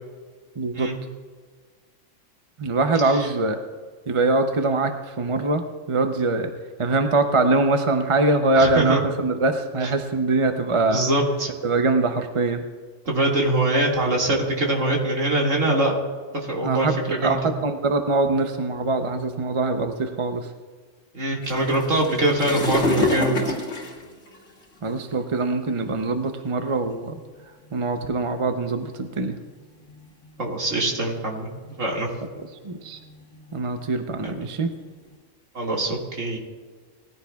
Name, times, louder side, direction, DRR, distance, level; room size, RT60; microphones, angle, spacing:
voice 1, 0.6-0.9 2.6-3.6 4.1-6.5 6.8-11.1 11.6-12.6 16.6-20.5 24.8-27.2 27.7-29.4 32.6-33.0 33.5-34.7, right 3 dB, 35° right, 6 dB, 0.6 m, -23 dB
voice 2, 8.6-9.0 10.9-11.5 13.1-16.0 16.3-17.4 21.1-23.5 30.4-31.5 31.8-32.1 34.2-34.4 35.5-36.4, right 1 dB, 75° right, -1 dB, 2.4 m, -23 dB
sound 1, 21.4-24.9 25.7-25.9 26.6-26.7 27.0-27.2 27.8-28.3 29.1-30.2 30.7-31.2 31.6-32.0 32.4-35.1, left 2 dB, 65° left, 2.3 m, -28 dB
19.0 x 14.5 x 2.3 m, 1.5 s
omnidirectional pair, 1.3 m